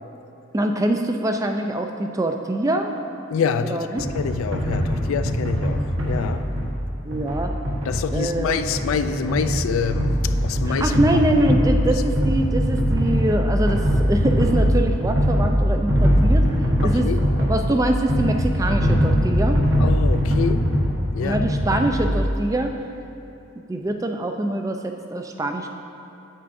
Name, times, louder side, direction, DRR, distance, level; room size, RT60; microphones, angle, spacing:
voice 1, 0.5-2.9 3.6-4.0 7.0-7.5 8.1-8.7 10.7-16.5 16.8-17.1 17.4-19.7 21.2-22.7 23.7-25.7, right 1 dB, 15° right, 5 dB, 0.3 m, -24 dB
voice 2, 3.3-3.9 4.1-5.8 6.1-6.5 7.9-10.1 10.4-11.2 16.8-17.2 19.8-20.6 21.1-21.5, left 6 dB, 85° left, 10 dB, 0.3 m, -26 dB
sound 1, 4.0-22.4, equal, 70° right, 1.2 m, -21 dB
9.0 x 7.8 x 2.6 m, 2.8 s
head